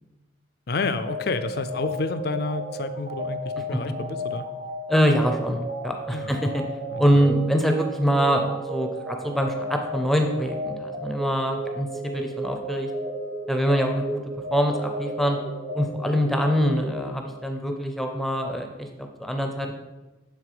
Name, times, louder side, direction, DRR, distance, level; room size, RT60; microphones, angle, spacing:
voice 1, 0.7-4.5 6.1-6.4 6.9-7.2, left 3 dB, 55° left, 11 dB, 0.5 m, -30 dB
sound 1, 1.1-17.7, right 1 dB, 55° right, 1.3 m, -34 dB
voice 2, 4.9-6.6 7.0-12.9 13.5-14.2 14.5-15.4 15.7-19.7, equal, ahead, 3 dB, 0.5 m, -24 dB
10.5 x 3.6 x 5.0 m, 1.1 s
head